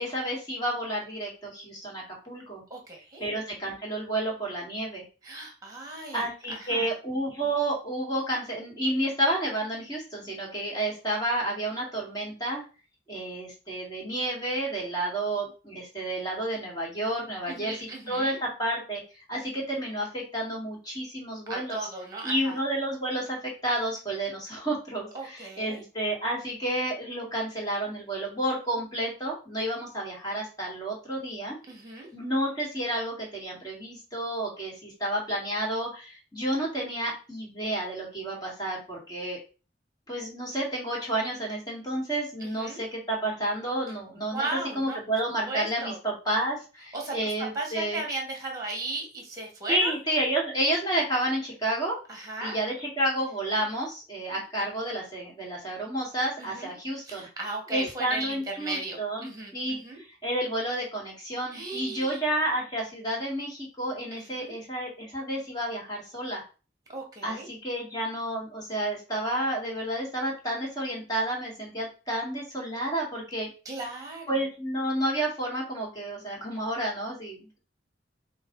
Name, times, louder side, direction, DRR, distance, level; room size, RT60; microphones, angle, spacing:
voice 1, 0.0-2.6 3.2-5.0 6.1-12.6 13.1-19.0 19.3-21.8 22.2-31.6 32.1-39.4 40.1-44.5 44.7-48.0 49.7-52.0 52.4-57.3 57.7-66.4 67.2-73.5 74.3-77.6, right 1 dB, 20° left, -3 dB, 1.9 m, -30 dB
voice 2, 2.7-3.2 5.2-6.9 17.5-18.4 21.5-22.6 25.1-25.8 31.7-32.1 42.4-42.8 44.3-45.0 45.4-46.0 46.9-50.0 52.1-52.6 56.4-56.7 57.0-60.0 61.5-62.2 64.1-64.6 66.9-67.5 73.6-74.3, right 3 dB, 20° right, 1 dB, 1.5 m, -36 dB
5.3 x 2.4 x 3.8 m, 0.34 s
head